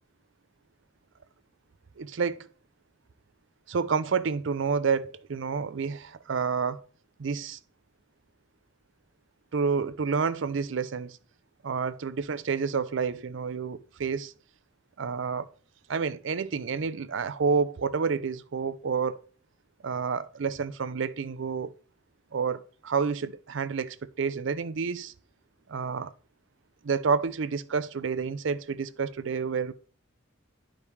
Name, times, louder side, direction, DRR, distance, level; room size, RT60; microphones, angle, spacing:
voice 1, 2.0-2.5 3.7-6.8 7.2-7.6 9.5-11.2 11.6-14.3 15.0-15.5 15.9-19.2 19.8-21.7 22.3-25.1 25.7-26.1 26.8-29.7, right 5 dB, 65° right, 0.5 m, -29 dB
11.0 x 5.1 x 3.3 m
head